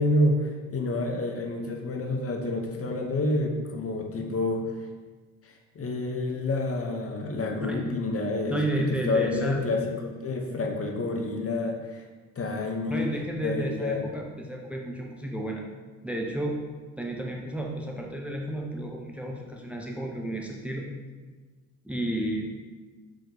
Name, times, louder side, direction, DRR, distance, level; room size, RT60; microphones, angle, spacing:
voice 1, 0.0-4.7 5.4-12.0 12.3-13.1 13.4-14.1, left 2 dB, 35° left, 2 dB, 1.3 m, -28 dB
voice 2, 8.5-9.6 12.9-15.6 16.0-16.6 17.0-20.9 21.8-22.5, right 1 dB, 5° right, 0 dB, 1.0 m, -32 dB
5.6 x 5.3 x 5.1 m, 1.4 s
hypercardioid pair, 55°, 42 cm